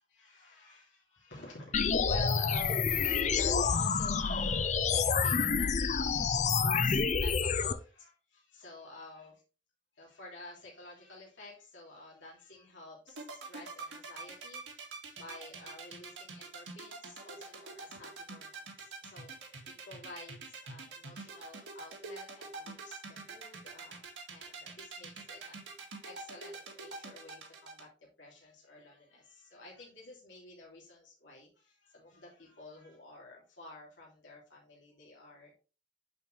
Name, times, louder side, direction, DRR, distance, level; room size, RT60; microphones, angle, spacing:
voice 1, 0.0-9.4 10.0-27.9 28.2-35.5, left 2 dB, 80° left, -4 dB, 3.0 m, -51 dB
sound 1, 1.7-7.7, left 5 dB, 40° left, 0.5 m, -28 dB
sound 2, 13.1-27.8, right 4 dB, 80° right, 2.0 m, -45 dB
11.0 x 4.5 x 3.3 m, 0.34 s
head